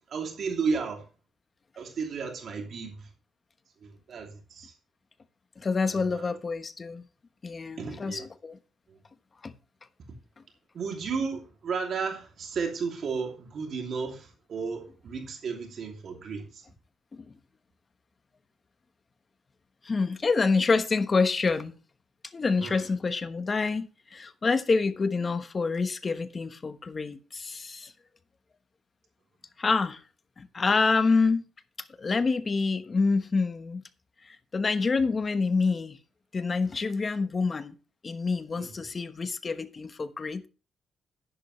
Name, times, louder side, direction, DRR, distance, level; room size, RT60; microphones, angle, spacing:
voice 1, 0.1-1.0 1.8-3.1 3.8-4.7 5.9-6.3 7.8-8.2 10.7-16.6 22.6-22.8 38.6-38.7, right 5 dB, 55° right, 2.7 m, -33 dB
voice 2, 5.6-7.0 7.4-8.6 9.4-9.5 17.1-17.2 19.8-21.7 22.3-27.9 29.6-30.0 30.4-31.4 32.0-33.8 34.3-36.0 36.3-37.7 38.0-40.5, left 4 dB, 30° left, 1.1 m, -27 dB
11.0 x 10.5 x 3.2 m
cardioid pair, 115°, 0 cm